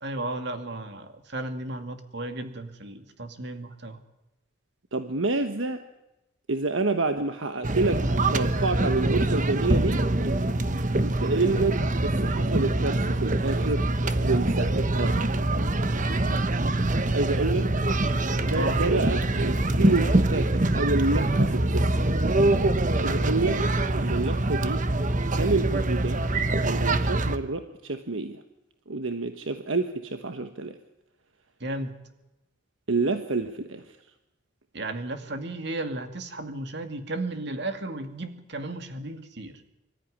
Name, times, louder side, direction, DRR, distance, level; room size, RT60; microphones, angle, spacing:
voice 1, 0.0-4.0 18.5-18.8 31.6-31.9 34.7-39.6, right 2 dB, 60° right, 7 dB, 2.4 m, -34 dB
voice 2, 4.9-5.8 6.5-10.0 11.0-13.9 14.2-15.3 17.1-17.7 18.3-22.1 22.9-23.7 23.9-24.8 25.3-26.2 26.5-28.4 28.9-30.8 32.9-34.0, right 3 dB, 75° right, 7 dB, 1.3 m, -28 dB
sound 1, 7.6-27.4, right 2 dB, 40° right, 1.1 m, -24 dB
24.5 x 14.0 x 9.9 m, 0.95 s
head